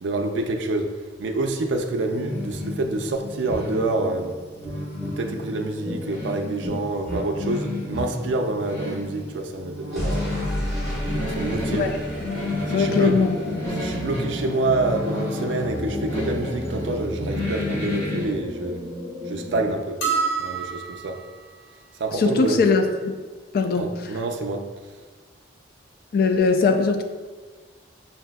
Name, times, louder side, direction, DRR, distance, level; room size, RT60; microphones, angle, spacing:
voice 1, 0.0-4.3 5.2-10.3 11.0-11.9 12.7-13.2 13.8-18.9 19.3-20.0 20.4-21.2 22.0-22.6 23.8-24.7, right 2 dB, 70° right, 5 dB, 0.4 m, -27 dB
sound 1, 1.9-18.3, left 2 dB, 35° left, 0.9 m, -32 dB
sound 2, 2.5-2.6 3.4-3.6 4.6-5.1 5.8-6.0 6.6-6.8 7.0-7.2 7.9-8.1 9.9-19.7, equal, ahead, 1.2 m, -32 dB
voice 2, 12.7-13.4 22.1-23.1 23.5-23.9 26.1-27.0, left 4 dB, 50° left, 6 dB, 0.3 m, -20 dB
sound 3, 20.0-21.4, right 5 dB, 85° left, 0.7 m, -26 dB
5.6 x 2.6 x 2.2 m, 1.4 s
head